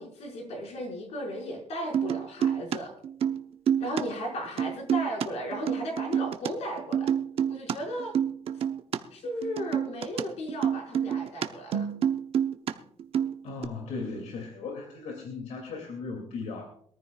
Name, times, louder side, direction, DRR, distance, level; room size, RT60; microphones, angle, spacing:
voice 1, 0.0-2.9 3.8-7.1 7.5-8.2 9.1-11.9, equal, 70° left, 1 dB, 5.3 m, -35 dB
sound 1, 1.9-2.8 3.0-4.0 4.3-6.5 6.8-9.0 9.2-12.7 13.0-13.7, right 9 dB, 55° right, 0.8 m, -28 dB
voice 2, 13.4-16.7, left 4 dB, 90° left, 2 dB, 2.6 m, -37 dB
23.0 x 14.0 x 2.4 m, 0.62 s
cardioid pair, 160°, 12 cm